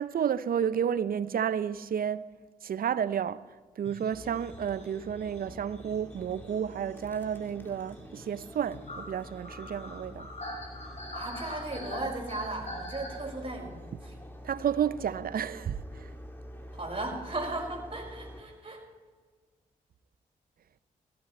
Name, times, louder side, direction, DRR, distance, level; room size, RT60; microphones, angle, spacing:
voice 1, 0.0-2.3 2.6-3.4 3.8-10.3 14.4-16.1, right 8 dB, 60° right, 0.6 m, -31 dB
sound 1, 3.8-13.9, left 1 dB, 45° left, 5.4 m, -44 dB
sound 2, 4.1-18.4, equal, 15° left, 2.4 m, -47 dB
voice 2, 11.1-14.1 16.7-18.8, right 2 dB, 35° right, 5.3 m, -36 dB
16.0 x 13.5 x 4.4 m
supercardioid pair, 45°, 17 cm